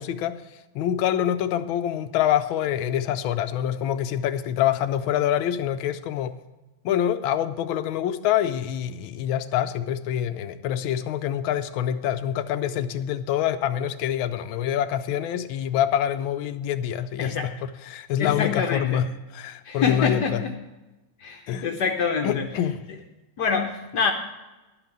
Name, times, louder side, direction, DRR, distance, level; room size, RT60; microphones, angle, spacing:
voice 1, 0.0-6.4 6.8-17.4 17.6-20.4 21.5-21.7 22.2-22.8, left 10 dB, 90° left, 10 dB, 1.4 m, -26 dB
voice 2, 18.2-19.1 19.6-20.5 21.2-22.5 23.4-24.1, left 5 dB, 65° left, 4 dB, 1.3 m, -25 dB
11.5 x 6.0 x 8.8 m, 1.1 s
omnidirectional pair, 2.1 m